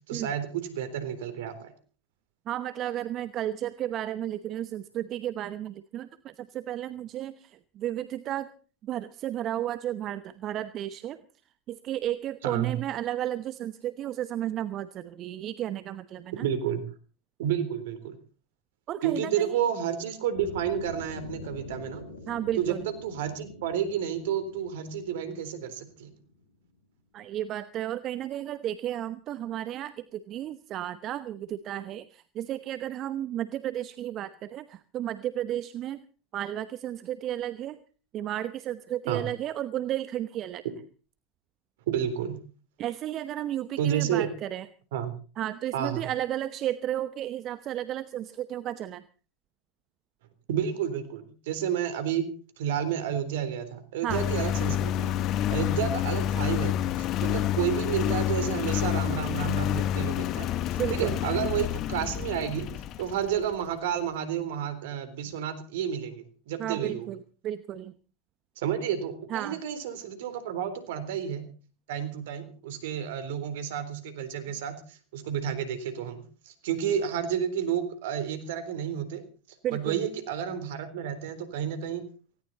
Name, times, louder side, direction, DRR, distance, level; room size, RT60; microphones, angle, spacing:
voice 1, 0.1-1.7 12.4-12.7 16.4-16.8 17.4-18.2 19.0-22.0 22.6-22.8 23.0-26.1 39.1-39.2 41.9-42.4 43.8-44.3 44.9-45.1 45.7-46.0 50.5-52.3 52.6-55.1 55.5-56.9 57.2-60.5 60.9-62.7 63.0-67.1 68.6-71.5 71.9-79.2 79.7-82.0, right 9 dB, 65° right, 11 dB, 3.7 m, -30 dB
voice 2, 2.5-8.5 8.8-11.2 11.7-16.5 18.9-19.6 22.3-22.9 27.1-36.0 36.3-37.8 38.1-40.6 42.8-44.7 45.4-49.0 54.0-54.3 60.8-61.2 66.6-67.2 67.4-67.9 69.3-69.6 79.6-80.0, right 12 dB, 40° right, 14 dB, 0.9 m, -33 dB
sound 1, 20.3-26.4, left 2 dB, 85° left, 3.5 m, -45 dB
Engine, 54.1-63.5, left 11 dB, 45° left, 1.1 m, -28 dB
19.0 x 17.5 x 4.2 m, 0.39 s
hypercardioid pair, 85°, 0 cm